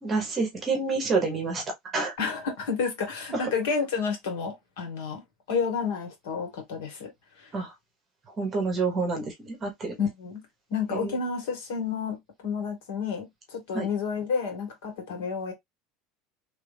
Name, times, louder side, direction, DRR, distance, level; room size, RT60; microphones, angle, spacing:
voice 1, 0.0-1.6 1.9-2.1 3.3-3.5 7.5-7.7 8.4-9.9 10.9-11.2 13.7-13.9, right 4 dB, 20° right, 1.1 m, -28 dB
voice 2, 2.2-5.2 5.5-7.1 7.4-7.5 10.0-10.4 10.7-15.5, left 5 dB, 75° left, 1.8 m, -30 dB
2.9 x 2.6 x 3.4 m
cardioid pair, 170°, 0 cm